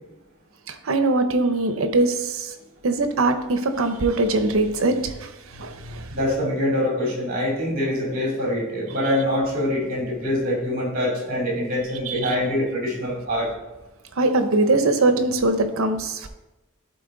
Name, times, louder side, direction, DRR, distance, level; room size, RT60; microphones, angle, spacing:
voice 1, 0.7-2.5 2.8-6.1 12.1-12.4 14.2-16.3, right 2 dB, 75° right, 9 dB, 0.7 m, -22 dB
voice 2, 6.1-13.5, left 1 dB, 40° right, -3 dB, 2.8 m, -24 dB
12.0 x 4.0 x 3.8 m, 1.0 s
head